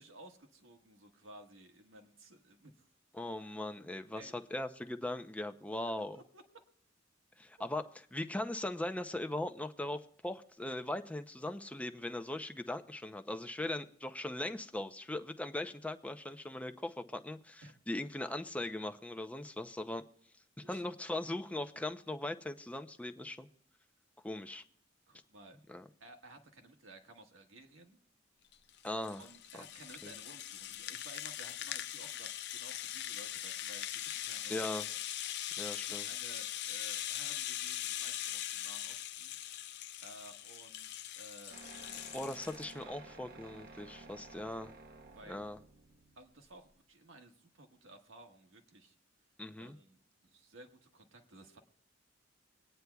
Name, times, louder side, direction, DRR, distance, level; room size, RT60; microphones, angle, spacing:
voice 1, 0.0-2.9 3.3-3.7 4.1-4.3 5.9-6.4 7.6-7.8 17.6-17.7 20.6-20.9 25.1-25.6 26.0-28.0 29.2-34.8 35.8-39.4 40.0-42.2 42.6-42.9 45.1-45.5 46.2-49.0 49.6-51.6, right 2 dB, 85° right, 4 dB, 1.5 m, -56 dB
voice 2, 3.1-6.2 7.4-20.0 20.6-23.5 24.2-24.6 25.7-25.8 28.8-29.2 29.5-29.6 30.0-30.1 34.5-34.9 35.6-36.1 42.1-44.7 45.3-45.6 49.4-49.8, left 1 dB, 5° left, 7 dB, 0.5 m, -39 dB
Rattle (instrument), 28.5-42.7, left 12 dB, 60° left, 0.4 m, -41 dB
sound 1, 41.5-46.9, right 3 dB, 50° right, 0.8 m, -54 dB
25.5 x 9.4 x 2.3 m, 0.63 s
head